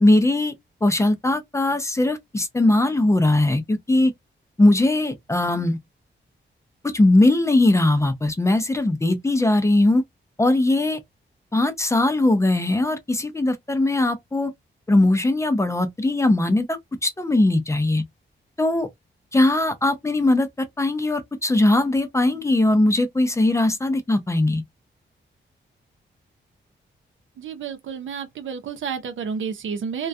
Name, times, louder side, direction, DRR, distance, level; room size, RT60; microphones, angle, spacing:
voice 1, 0.0-0.5 0.8-4.1 4.6-5.8 6.8-10.0 10.4-11.0 11.5-14.5 14.9-18.0 18.6-18.9 19.3-20.5 20.8-24.6, left 2 dB, 15° left, 0.4 m, -20 dB
voice 2, 27.4-30.1, right 6 dB, 85° right, 0.6 m, -30 dB
2.2 x 2.2 x 2.5 m
wide cardioid pair, 135°, 20 cm